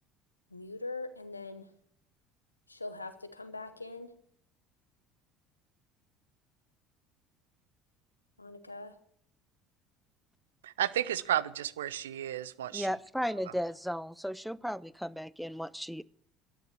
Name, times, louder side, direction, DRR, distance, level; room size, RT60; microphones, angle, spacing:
voice 1, 0.5-1.7 2.7-4.1 8.4-8.9, left 3 dB, 90° left, 1.0 m, -42 dB
voice 2, 10.6-12.9, right 11 dB, 75° right, 0.6 m, -32 dB
voice 3, 12.7-16.0, equal, ahead, 0.5 m, -35 dB
12.0 x 9.7 x 7.4 m
figure-of-eight pair, 60°, 0 cm